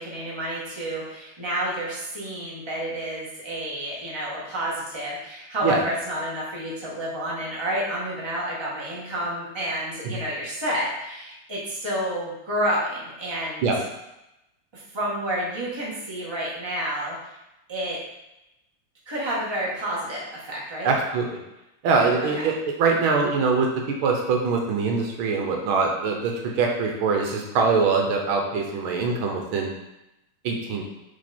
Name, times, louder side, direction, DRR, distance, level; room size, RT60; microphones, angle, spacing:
voice 1, 0.0-13.7 14.7-17.2 17.7-18.0 19.1-20.9 22.3-22.4, right 1 dB, 15° right, -6 dB, 1.3 m, -29 dB
voice 2, 20.8-21.4 21.8-29.7 30.4-30.8, right 4 dB, 80° right, 1 dB, 1.6 m, -23 dB
6.5 x 3.5 x 4.3 m, 0.92 s
omnidirectional pair, 2.3 m